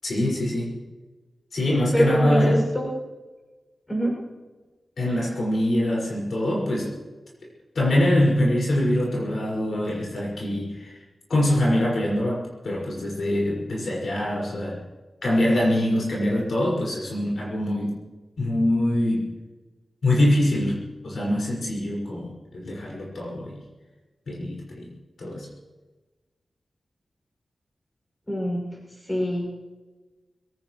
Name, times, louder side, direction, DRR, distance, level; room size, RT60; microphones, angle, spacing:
voice 1, 0.0-0.7 1.5-2.6 5.0-6.9 7.7-11.0 11.3-14.8 15.2-17.9 18.4-19.3 20.0-23.6 24.3-24.9 25.2-25.5, left 1 dB, 65° left, -4 dB, 5.8 m, -24 dB
voice 2, 1.9-2.9 3.9-4.1 28.3-28.8 29.0-29.5, equal, 15° left, -1 dB, 6.6 m, -24 dB
22.5 x 18.0 x 3.2 m, 1.2 s
wide cardioid pair, 140°, 0 cm